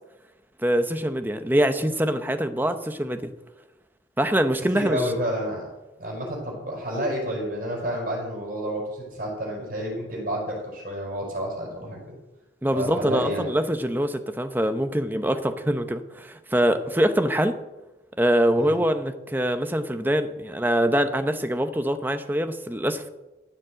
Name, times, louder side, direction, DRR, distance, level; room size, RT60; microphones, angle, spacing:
voice 1, 0.6-3.3 4.2-5.0 12.6-17.6 18.2-23.1, equal, 10° right, 8 dB, 0.8 m, -24 dB
voice 2, 4.7-5.7 6.0-12.2 12.7-13.5 18.6-18.8, equal, 50° right, -3 dB, 5.7 m, -30 dB
15.0 x 7.4 x 7.7 m, 1.0 s
head